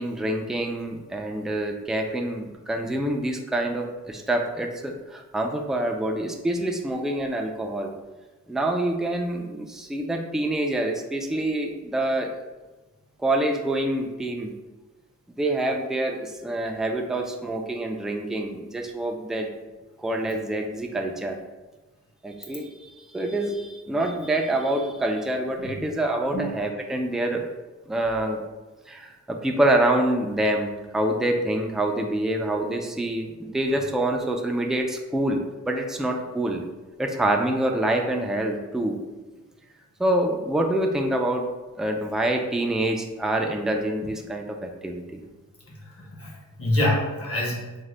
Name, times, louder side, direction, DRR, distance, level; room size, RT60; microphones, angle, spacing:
voice 1, 0.0-7.9 8.5-12.3 13.2-14.5 15.4-19.5 20.0-21.4 22.2-22.7 23.1-27.4 27.9-28.4 28.9-29.0 29.3-30.7 30.9-35.4 35.7-36.6 37.0-39.0 40.0-41.4 41.8-44.4 44.8-45.2, right 1 dB, ahead, 2 dB, 0.3 m, -26 dB
voice 2, 46.0-46.3 46.6-47.6, left 1 dB, 50° left, -3 dB, 1.1 m, -26 dB
3.6 x 2.1 x 3.3 m, 1.2 s
wide cardioid pair, 95°, 29 cm